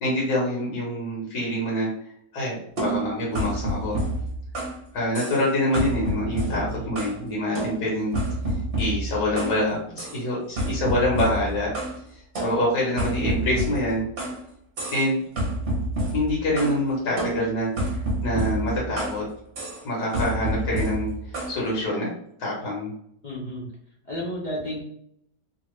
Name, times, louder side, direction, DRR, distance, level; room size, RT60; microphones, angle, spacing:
voice 1, 0.0-1.9 2.3-4.0 4.9-8.1 8.8-11.7 12.4-14.1 14.9-15.2 16.1-19.2 19.8-21.1 21.5-22.1 22.4-22.9, left 1 dB, 70° left, -4 dB, 1.6 m, -26 dB
sound 1, 2.8-4.8 5.1-5.5 5.7-7.2 7.5-9.6 10.0-10.2 10.6-12.0 12.3-14.4 14.8-15.1 15.4-16.8 17.2-19.2 19.5-19.8 20.1-21.6, right 1 dB, 45° right, 1.0 m, -29 dB
voice 2, 6.5-7.0 23.2-23.7 24.0-24.8, equal, 45° left, -5 dB, 0.6 m, -32 dB
3.2 x 2.3 x 3.1 m, 0.68 s
omnidirectional pair, 1.9 m